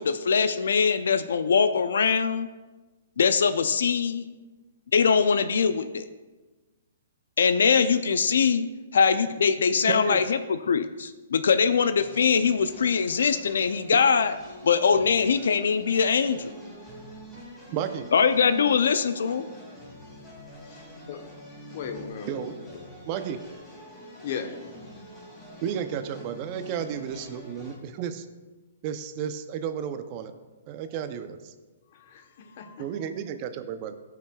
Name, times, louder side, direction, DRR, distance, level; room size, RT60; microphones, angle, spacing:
voice 1, 0.0-2.5 3.2-4.3 4.9-6.0 7.4-8.7 8.9-14.4 14.6-16.5 18.1-19.5, left 6 dB, 75° left, 11 dB, 0.4 m, -22 dB
voice 2, 9.9-10.2 17.6-18.1 22.3-22.6 23.1-23.4 25.6-28.3 28.8-30.3 30.7-31.5 32.8-34.0, right 8 dB, 35° right, 9 dB, 0.5 m, -32 dB
sound 1, 12.0-27.8, equal, 10° left, 2.3 m, -46 dB
voice 3, 20.9-21.2 21.7-22.9 24.2-24.6 31.9-32.9, left 6 dB, 55° left, 7 dB, 0.9 m, -37 dB
14.5 x 5.8 x 2.3 m, 1.2 s
hypercardioid pair, 140°, 0 cm